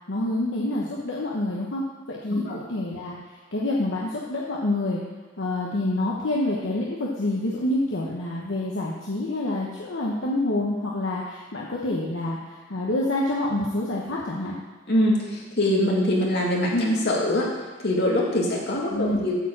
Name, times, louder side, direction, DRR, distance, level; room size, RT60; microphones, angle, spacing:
voice 1, 0.1-3.2 3.5-5.0 5.4-12.4 12.7-14.5 18.9-19.3, left 1 dB, 75° left, -4 dB, 1.1 m, -27 dB
voice 2, 14.9-17.5 17.8-19.3, left 1 dB, 60° left, -3 dB, 2.0 m, -23 dB
8.9 x 4.7 x 7.5 m, 1.3 s
head